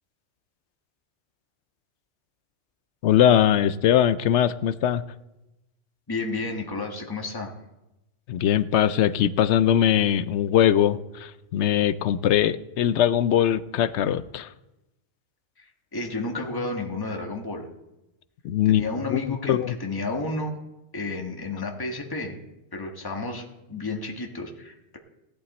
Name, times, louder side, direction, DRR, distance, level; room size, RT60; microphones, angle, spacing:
voice 1, 3.0-5.0 8.3-14.5 18.4-19.7, left 10 dB, 70° left, 15 dB, 0.9 m, -21 dB
voice 2, 6.1-7.5 15.6-17.6 18.6-20.6 20.9-22.4 22.7-25.0, left 3 dB, 20° left, 1 dB, 1.5 m, -31 dB
17.5 x 11.0 x 4.2 m, 0.96 s
omnidirectional pair, 1.2 m